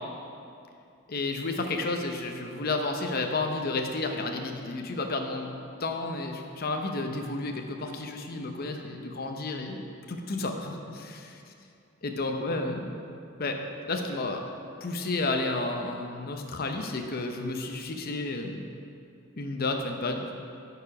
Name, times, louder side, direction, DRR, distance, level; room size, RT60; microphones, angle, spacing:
voice 1, 1.1-5.5 5.8-11.4 12.0-12.9 13.4-13.6 13.9-14.4 14.8-18.6 19.4-20.3, left 2 dB, 50° left, 4 dB, 0.7 m, -31 dB
10.0 x 4.8 x 5.8 m, 2.5 s
head